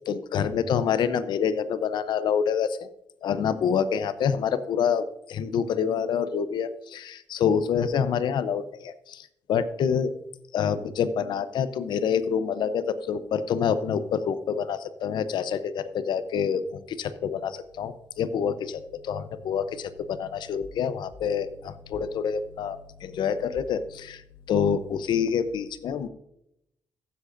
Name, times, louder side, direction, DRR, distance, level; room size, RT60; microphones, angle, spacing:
voice 1, 0.1-2.9 3.2-10.1 10.5-24.2 24.5-26.1, left 7 dB, 80° left, 13 dB, 0.7 m, -27 dB
15.0 x 7.7 x 2.6 m, 0.78 s
cardioid pair, 70°, 8 cm